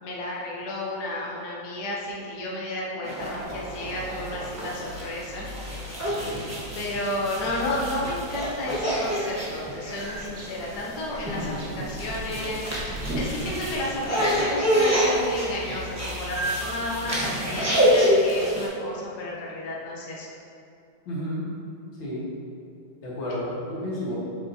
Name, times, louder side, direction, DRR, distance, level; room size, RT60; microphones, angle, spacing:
voice 1, 0.0-5.5 6.7-20.3, left 1 dB, 65° left, -4 dB, 1.4 m, -32 dB
sound 1, 3.0-18.7, equal, 15° right, 0.6 m, -27 dB
sound 2, 3.2-17.9, equal, 60° right, 1.1 m, -42 dB
voice 2, 6.1-6.5 21.1-21.5 22.0-22.3 23.0-24.2, left 1 dB, 85° left, -6 dB, 2.3 m, -32 dB
7.3 x 5.8 x 2.8 m, 2.6 s
omnidirectional pair, 2.1 m